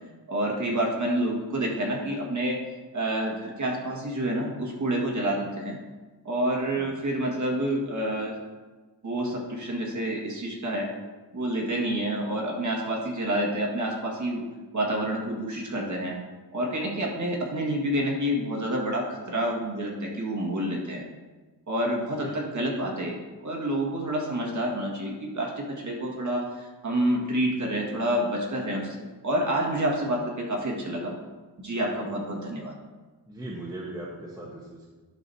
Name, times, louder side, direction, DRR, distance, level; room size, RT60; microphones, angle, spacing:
voice 1, 0.3-2.6 2.9-5.8 6.2-8.3 9.0-10.9 11.3-14.4 14.7-16.2 16.5-21.0 21.7-23.2 23.4-29.0 29.2-31.1 31.6-32.7, right 1 dB, 40° right, -2 dB, 1.8 m, -28 dB
voice 2, 33.3-34.9, right 1 dB, 10° right, -3 dB, 1.1 m, -39 dB
11.5 x 6.0 x 2.8 m, 1.3 s
wide cardioid pair, 130°, 43 cm